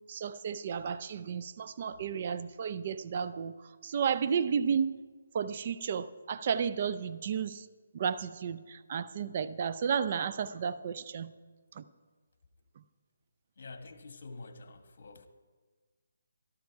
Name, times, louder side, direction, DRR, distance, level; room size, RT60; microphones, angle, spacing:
voice 1, 0.0-3.5 3.8-4.9 5.3-7.7 7.9-11.3 11.8-11.9, right 7 dB, 40° right, 13 dB, 0.5 m, -32 dB
voice 2, 13.6-15.3, left 3 dB, 60° left, 8 dB, 1.4 m, -47 dB
12.5 x 12.5 x 4.6 m, 1.4 s
hypercardioid pair, 160°, 0 cm